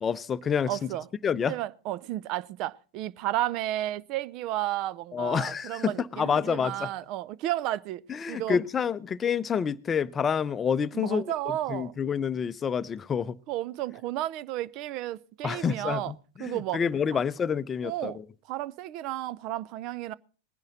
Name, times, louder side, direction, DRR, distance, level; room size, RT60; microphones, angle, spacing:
voice 1, 0.0-0.9 1.2-1.6 5.1-6.9 8.1-11.3 11.7-13.4 15.4-18.2, left 7 dB, 25° left, 0.6 m, -28 dB
voice 2, 0.7-1.1 1.5-8.6 10.9-11.9 13.5-16.1 16.4-16.8 17.8-18.2 18.5-20.1, right 14 dB, 45° right, 0.6 m, -32 dB
19.5 x 10.5 x 3.9 m
hypercardioid pair, 95°, 0 cm